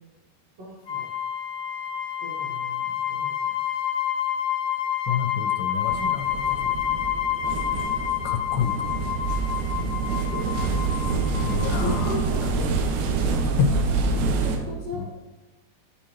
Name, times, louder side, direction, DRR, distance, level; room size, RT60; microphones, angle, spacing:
voice 1, 0.6-1.1 2.2-3.9 10.3-12.7 13.1-13.6 14.4-15.1, left 1 dB, 60° right, -8 dB, 1.7 m, -39 dB
sound 1, 0.9-12.3, left 10 dB, 60° left, 1.0 m, -28 dB
voice 2, 5.1-6.8 8.2-8.9 11.4-12.2 13.6-13.8 14.9-15.0, left 6 dB, 85° left, 6 dB, 2.4 m, -28 dB
sound 2, 5.8-14.6, right 4 dB, 80° right, 2.7 m, -26 dB
9.9 x 4.9 x 3.0 m, 1.1 s
omnidirectional pair, 5.0 m